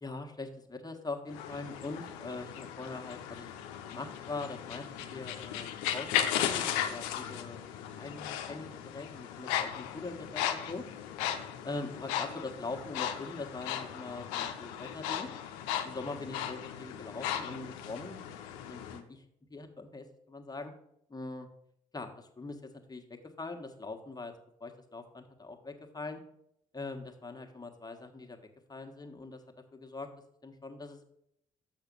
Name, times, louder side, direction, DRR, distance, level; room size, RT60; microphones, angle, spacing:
voice 1, 0.0-3.5 3.9-10.8 11.6-15.3 15.8-18.2 18.5-19.2 19.5-20.7 21.1-21.5 21.9-24.3 24.6-26.2 26.7-28.4 28.7-29.4 29.7-30.1 30.4-31.0, left 3 dB, 25° left, 4 dB, 1.4 m, -42 dB
sound 1, 1.3-19.0, left 10 dB, 90° left, 0.6 m, -36 dB
6.4 x 6.1 x 5.4 m, 0.75 s
hypercardioid pair, 50°, 17 cm